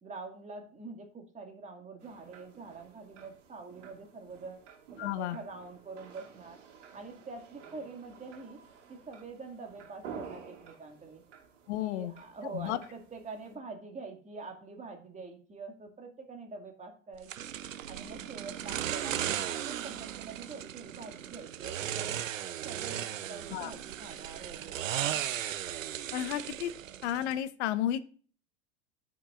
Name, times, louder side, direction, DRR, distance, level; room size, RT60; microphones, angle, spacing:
voice 1, 0.0-4.6 5.0-6.6 6.9-8.6 8.9-11.2 11.8-17.5 17.9-22.2 22.6-25.2, right 4 dB, 20° right, 3 dB, 2.1 m, -45 dB
sound 1, 2.0-13.6, right 6 dB, 65° right, 2.6 m, -51 dB
voice 2, 5.0-5.4 11.7-12.1 12.5-12.8 23.5-23.7 26.1-26.7 27.0-28.0, left 12 dB, 60° left, 14 dB, 0.9 m, -32 dB
sound 2, 17.3-27.4, right 11 dB, 80° right, 0.7 m, -36 dB
14.0 x 6.1 x 2.5 m, 0.42 s
hypercardioid pair, 95°, 38 cm